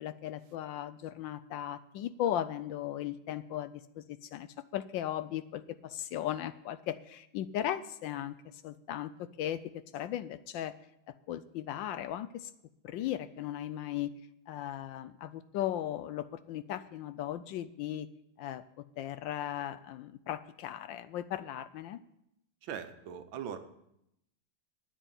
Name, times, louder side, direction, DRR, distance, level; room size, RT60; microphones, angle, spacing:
voice 1, 0.0-8.4 8.6-10.7 11.3-12.5 12.8-14.1 14.5-18.1 18.4-18.6 19.0-22.0, left 11 dB, 75° left, 14 dB, 1.2 m, -37 dB
voice 2, 22.6-23.6, right 8 dB, 70° right, 10 dB, 1.7 m, -40 dB
9.1 x 9.0 x 8.7 m, 0.80 s
omnidirectional pair, 2.3 m